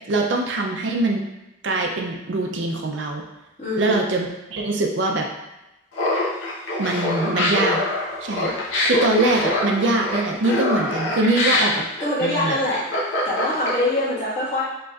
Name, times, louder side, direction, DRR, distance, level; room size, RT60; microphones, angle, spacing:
voice 1, 0.1-1.2 1.6-3.2 3.8-5.3 6.8-7.8 8.2-8.5 8.8-11.8 12.2-12.6, right 2 dB, 65° right, 1 dB, 0.5 m, -23 dB
voice 2, 3.6-4.0 11.2-11.5 12.0-12.8 13.2-14.6, left 1 dB, 35° left, -8 dB, 1.5 m, -24 dB
Laughter, 5.9-14.0, left 1 dB, 75° left, 1.0 m, -24 dB
5.1 x 3.0 x 2.4 m, 0.97 s
head